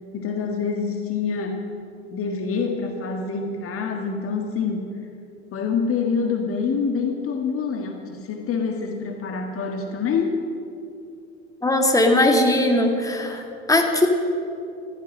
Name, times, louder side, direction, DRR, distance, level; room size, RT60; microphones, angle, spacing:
voice 1, 0.1-1.7 2.1-4.9 5.5-10.4, left 5 dB, 40° left, 3 dB, 1.8 m, -26 dB
voice 2, 11.6-13.4 13.7-14.1, left 1 dB, 10° left, 2 dB, 2.2 m, -19 dB
15.5 x 13.0 x 6.5 m, 2.6 s
figure-of-eight pair, 70°, 34 cm